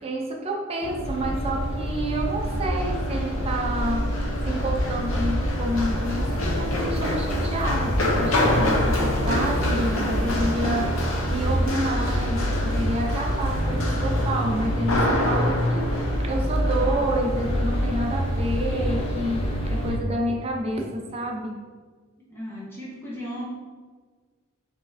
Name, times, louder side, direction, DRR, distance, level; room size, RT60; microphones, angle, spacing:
voice 1, 0.0-4.1 4.4-11.0 11.3-21.6, right 1 dB, 30° right, 0 dB, 0.5 m, -29 dB
Run, 0.8-19.9, equal, 65° left, 0.7 m, -28 dB
sound 1, 1.0-20.0, equal, 25° left, 0.4 m, -27 dB
voice 2, 22.3-23.4, equal, 10° left, -8 dB, 0.8 m, -35 dB
4.4 x 3.3 x 2.6 m, 1.5 s
head